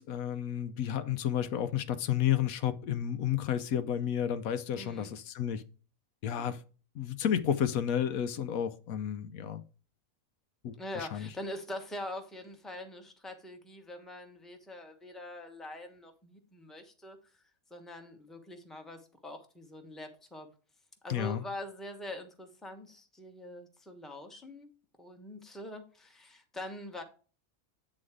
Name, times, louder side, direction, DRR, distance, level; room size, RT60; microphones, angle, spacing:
voice 1, 0.0-5.6 6.2-6.6 6.9-9.6 10.6-11.3 21.1-21.4, left 9 dB, 80° left, 1.1 m, -31 dB
voice 2, 4.7-5.1 10.7-17.2 17.7-20.5 21.0-24.7 25.0-27.0, left 1 dB, ahead, 1.0 m, -44 dB
8.6 x 4.0 x 4.8 m
omnidirectional pair, 1.5 m